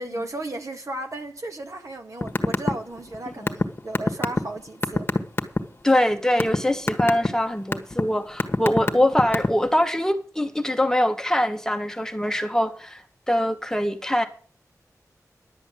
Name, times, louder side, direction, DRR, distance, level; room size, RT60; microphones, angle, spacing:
voice 1, 0.0-5.1 7.3-7.4 8.9-9.1, right 1 dB, 55° right, 2.0 m, -35 dB
sound 1, 2.2-2.7 3.0-5.6 6.1-6.6 6.9-7.3 7.7-8.0 8.4-9.7, left 2 dB, 35° left, 1.5 m, -21 dB
voice 2, 5.8-14.3, left 1 dB, 10° left, 1.4 m, -23 dB
11.5 x 7.9 x 7.6 m
wide cardioid pair, 80°, 6 cm